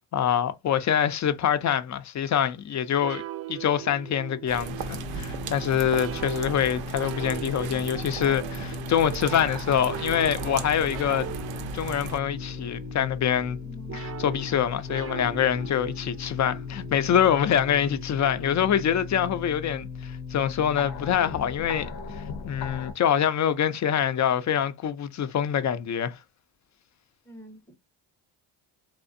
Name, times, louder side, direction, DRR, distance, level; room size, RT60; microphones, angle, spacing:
voice 1, 0.1-3.2 3.5-11.3 11.7-13.6 13.9-26.2, left 9 dB, 40° left, 0.4 m, -25 dB
sound 1, 3.0-19.2, right 9 dB, 30° right, 0.5 m, -41 dB
sound 2, 4.5-12.2, right 7 dB, 75° right, 0.6 m, -37 dB
sound 3, 4.7-22.9, left 6 dB, 80° left, 0.7 m, -38 dB
voice 2, 13.6-14.0 27.3-27.8, right 1 dB, 5° left, 0.7 m, -46 dB
2.5 x 2.1 x 2.5 m
supercardioid pair, 65°, 47 cm